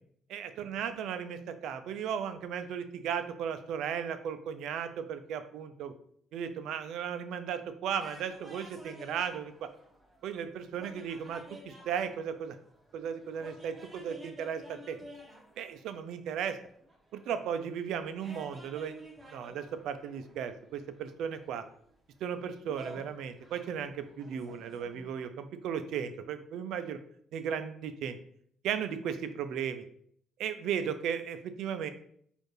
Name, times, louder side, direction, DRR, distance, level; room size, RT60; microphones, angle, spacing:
voice 1, 0.3-5.9 6.3-9.7 10.2-12.6 12.9-15.0 15.6-16.6 17.1-18.9 19.2-21.6 22.2-27.0 27.3-28.2 28.6-29.8 30.4-31.9, right 8 dB, 75° right, 10 dB, 0.4 m, -36 dB
sound 1, 8.0-25.2, right 1 dB, 15° right, 0.9 m, -52 dB
4.4 x 2.5 x 3.2 m, 0.64 s
supercardioid pair, 80°, 0 cm